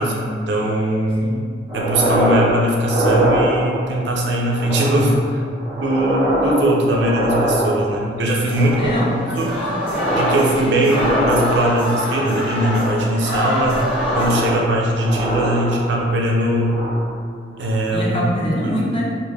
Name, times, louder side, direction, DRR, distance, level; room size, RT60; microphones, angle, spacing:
voice 1, 0.0-1.3 1.7-5.4 5.7-8.9 9.4-9.5 10.2-13.8 14.1-16.8 17.6-18.2, right 1 dB, 80° right, -1 dB, 0.5 m, -20 dB
sound 1, 1.7-2.5 2.8-4.0 4.5-5.2 5.5-8.1 8.5-9.2 9.5-10.5 10.8-11.9 12.5-13.1 13.6-16.1 16.5-17.1 17.5-17.7, right 1 dB, 15° right, 0.6 m, -23 dB
sound 2, 8.5-14.3, equal, 90° left, 1.3 m, -26 dB
voice 2, 8.8-9.2 9.6-10.1 17.9-19.0, equal, 30° left, -4 dB, 0.4 m, -24 dB
3.2 x 2.6 x 2.2 m, 2.1 s
head